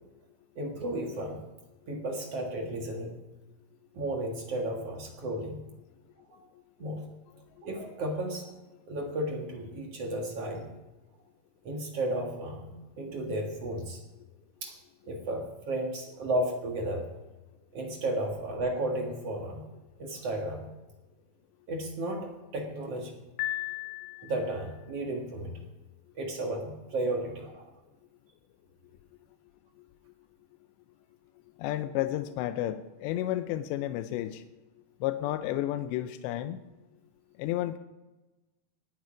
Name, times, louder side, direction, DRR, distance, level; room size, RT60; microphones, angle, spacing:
voice 1, 0.6-1.4 1.9-3.1 3.9-5.6 6.3-6.4 6.8-7.0 7.6-8.5 8.9-10.7 11.6-14.0 14.6-14.8 15.0-17.1 17.7-19.6 20.0-20.7 21.7-23.1 24.2-25.6 26.2-27.7, right 1 dB, 55° right, 1 dB, 1.8 m, -33 dB
Piano, 23.4-24.7, left 16 dB, 70° left, 2.2 m, -35 dB
voice 2, 31.6-34.4 35.0-36.6 37.4-37.8, left 13 dB, 85° left, 10 dB, 2.8 m, -31 dB
19.0 x 9.4 x 5.0 m, 1.1 s
omnidirectional pair, 5.0 m